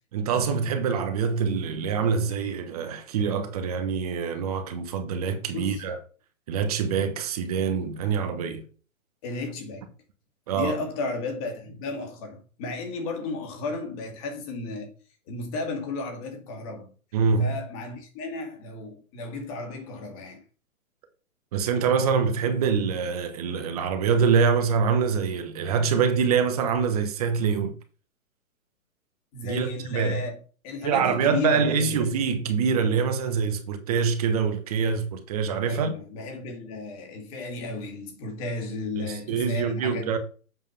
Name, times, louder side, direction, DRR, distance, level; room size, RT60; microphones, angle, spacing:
voice 1, 0.1-6.0 6.5-8.6 10.5-10.7 17.1-17.5 21.5-27.7 29.4-30.2 30.8-36.0 39.0-40.2, right 6 dB, 30° right, 1.0 m, -25 dB
voice 2, 5.4-5.8 9.2-9.9 10.5-14.9 15.3-16.9 17.4-20.4 29.3-30.4 30.6-31.9 35.7-40.2, left 3 dB, 25° left, 2.1 m, -34 dB
7.7 x 5.0 x 5.4 m
hypercardioid pair, 160°, 41 cm